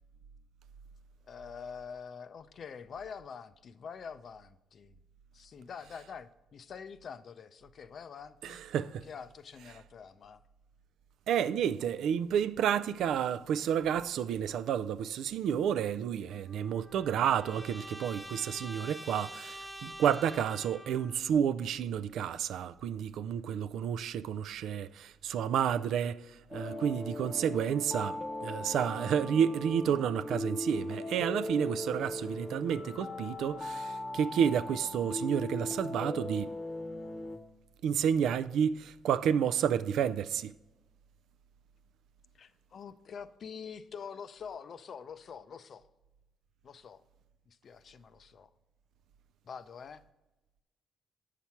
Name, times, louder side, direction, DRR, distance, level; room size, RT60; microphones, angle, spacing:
voice 1, 1.3-5.0 5.3-8.6 9.0-10.4 42.3-45.9 46.6-47.0 47.5-48.5 49.4-50.0, left 6 dB, 55° left, 0.4 m, -46 dB
voice 2, 8.4-9.0 11.3-26.3 26.5-36.5 37.8-40.5, right 8 dB, 75° right, 0.3 m, -30 dB
Trumpet, 16.3-21.2, equal, 10° right, 1.3 m, -46 dB
sound 1, 26.5-37.4, left 1 dB, 20° left, 0.9 m, -39 dB
8.2 x 5.8 x 4.4 m
cardioid pair, 90°, 0 cm